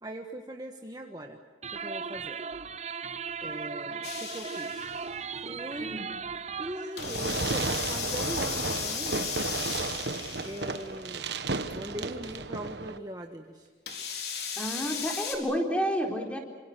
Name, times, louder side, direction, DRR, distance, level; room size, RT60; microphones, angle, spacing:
voice 1, 0.0-1.4 1.7-2.4 3.4-4.8 5.4-6.0 6.6-9.4 10.4-11.3 11.7-13.7, right 1 dB, 20° right, 3 dB, 1.4 m, -40 dB
sound 1, 1.6-7.0, right 5 dB, 35° right, 0.7 m, -37 dB
sound 2, 4.0-5.2 7.0-11.0 11.7-11.8 13.9-15.4, left 6 dB, 60° left, 4.4 m, -36 dB
Fireworks, 7.0-13.0, right 3 dB, 75° right, 1.2 m, -33 dB
voice 2, 14.6-16.4, equal, 5° left, 1 dB, 4.1 m, -30 dB
27.5 x 26.0 x 6.3 m, 1.5 s
head